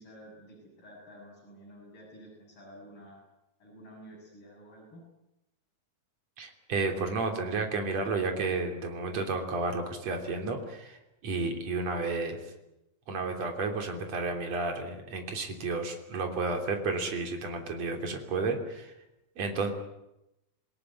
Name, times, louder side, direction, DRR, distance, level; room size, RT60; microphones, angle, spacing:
voice 1, 0.0-3.2 3.6-5.0, equal, 40° left, -3 dB, 8.1 m, -51 dB
voice 2, 6.4-12.4 13.1-18.9 19.4-19.7, right 3 dB, 55° right, 4 dB, 4.3 m, -32 dB
27.0 x 17.5 x 9.8 m, 0.90 s
omnidirectional pair, 3.7 m